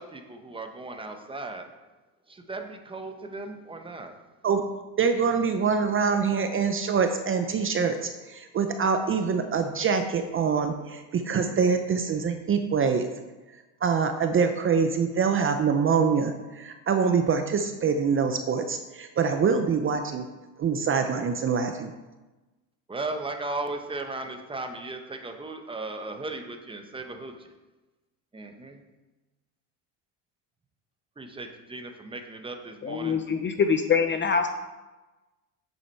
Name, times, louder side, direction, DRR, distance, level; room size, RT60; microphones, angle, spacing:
voice 1, 0.0-1.6 2.3-4.1 22.9-27.5 28.3-28.8 31.2-33.2, right 2 dB, 10° right, 5 dB, 0.9 m, -36 dB
voice 2, 5.0-13.1 13.8-20.2 20.6-21.9, right 5 dB, 30° right, 6 dB, 0.6 m, -25 dB
voice 3, 32.8-34.5, left 6 dB, 25° left, 7 dB, 0.5 m, -24 dB
8.3 x 7.2 x 4.5 m, 1.1 s
cardioid pair, 120°, 42 cm